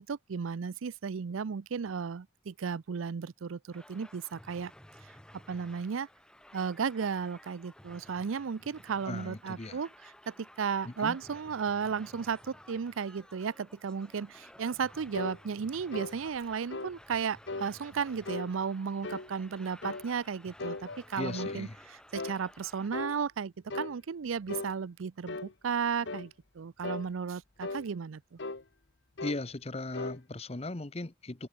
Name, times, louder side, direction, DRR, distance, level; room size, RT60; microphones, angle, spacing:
voice 1, 0.0-4.7 5.5-6.1 6.5-9.9 10.3-28.4, right 6 dB, 85° right, 0.5 m, -34 dB
sound 1, 3.7-22.9, left 1 dB, 5° left, 3.7 m, -55 dB
voice 2, 9.0-9.8 10.8-11.2 21.1-21.8 29.2-31.5, left 2 dB, 30° left, 0.9 m, -38 dB
sound 2, 15.1-15.4 15.9-16.2 16.7-16.9 17.5-17.7 18.3-18.5 19.0-19.3 19.8-20.1 20.6-21.6 22.1-22.4 22.9-23.2 23.7-23.9 24.5-24.7 25.3-25.5 26.1-26.3 26.8-27.1 27.6-27.9 28.4-28.6 29.2-29.4 29.9-30.2, left 3 dB, 60° left, 1.1 m, -38 dB
head